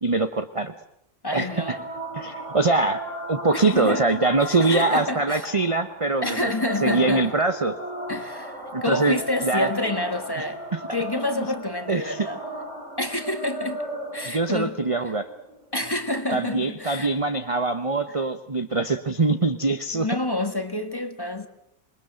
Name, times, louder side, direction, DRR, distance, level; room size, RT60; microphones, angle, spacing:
voice 1, 0.0-0.7 1.3-1.8 2.1-3.0 3.3-6.5 6.8-7.7 8.7-9.7 10.4-10.5 10.7-10.8 11.2-11.3 11.9-12.3 14.2-15.3 16.3-20.1, right 3 dB, 25° right, 0.9 m, -23 dB
voice 2, 1.2-1.8 3.5-5.5 6.2-7.3 8.1-10.6 10.9-12.4 13.0-13.8 14.1-14.8 15.7-17.1 19.9-21.5, left 1 dB, 15° left, 1.7 m, -28 dB
sound 1, 1.5-16.5, right 1 dB, 50° right, 5.1 m, -36 dB
27.0 x 21.0 x 7.8 m
omnidirectional pair, 1.6 m